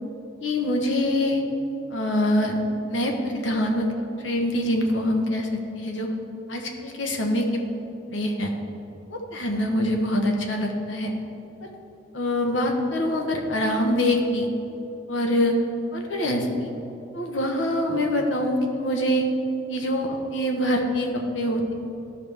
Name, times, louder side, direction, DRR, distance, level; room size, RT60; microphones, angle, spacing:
voice 1, 0.4-1.4 1.9-2.6 2.9-3.9 4.2-5.5 5.7-6.1 6.5-7.6 8.1-8.5 9.1-11.1 12.1-14.5 15.1-15.5 15.9-16.7 17.1-19.3 19.7-21.7, left 1 dB, 75° left, 2 dB, 1.0 m, -24 dB
13.0 x 4.9 x 3.5 m, 2.9 s
head